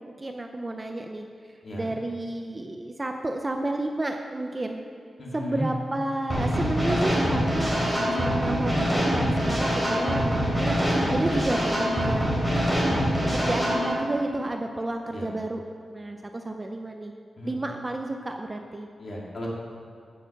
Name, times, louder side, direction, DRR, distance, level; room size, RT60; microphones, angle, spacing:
voice 1, 0.1-1.3 1.7-4.9 5.3-13.0 13.3-15.6 15.9-17.1 17.4-18.9, right 2 dB, 20° right, 4 dB, 0.5 m, -31 dB
voice 2, 5.2-5.7 15.1-15.3 17.4-17.5 19.0-19.5, equal, 35° left, -4 dB, 2.6 m, -34 dB
sound 1, 6.3-13.9, equal, ahead, 3.6 m, -24 dB
15.5 x 6.9 x 5.8 m, 2.4 s
wide cardioid pair, 180°, 0 cm